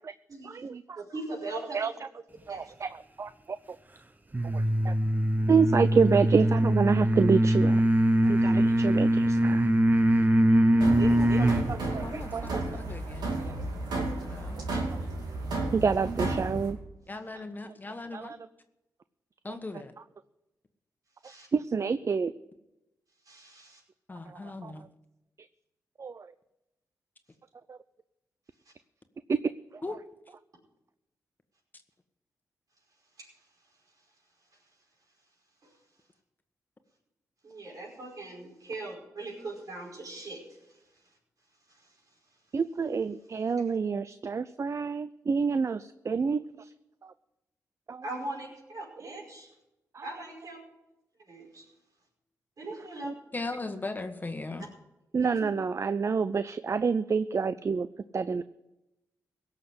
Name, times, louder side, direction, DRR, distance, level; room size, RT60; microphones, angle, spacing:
voice 1, 0.4-1.0 1.7-1.9 2.5-3.6 4.5-4.9 5.5-7.8 8.3-9.7 11.3-11.4 11.7-12.6 13.4-13.6 14.9-15.0 15.7-16.8 18.1-18.4 19.5-19.6 21.5-22.3 24.3-24.7 26.0-26.3 27.7-27.8 29.3-29.4 29.7-29.8 42.5-46.7 47.0-47.1 47.9-48.0 49.0-49.1 49.9-50.0 53.0-53.1 55.1-57.9 58.1-58.4, right 5 dB, 45° right, 14 dB, 0.5 m, -28 dB
voice 2, 1.0-1.9 2.5-2.7 8.2-8.5 10.8-11.5 12.5-12.6 21.2-21.5 23.3-23.8 33.2-33.3 35.6-35.7 37.4-40.4 41.7-41.8 48.0-49.5 50.0-50.6 51.3-51.7 52.6-53.1 55.2-55.5, right 2 dB, 60° right, -1 dB, 5.2 m, -40 dB
sound 1, 4.3-11.7, right 1 dB, 25° right, 1.0 m, -23 dB
sound 2, 10.8-16.7, right 2 dB, 90° right, 2.4 m, -33 dB
voice 3, 12.0-13.7 14.2-14.6 17.1-18.3 19.4-19.9 24.1-24.9 29.8-29.9 53.3-54.7, left 2 dB, 25° left, 7 dB, 1.4 m, -38 dB
17.0 x 6.6 x 7.8 m, 0.93 s
cardioid pair, 55°, 7 cm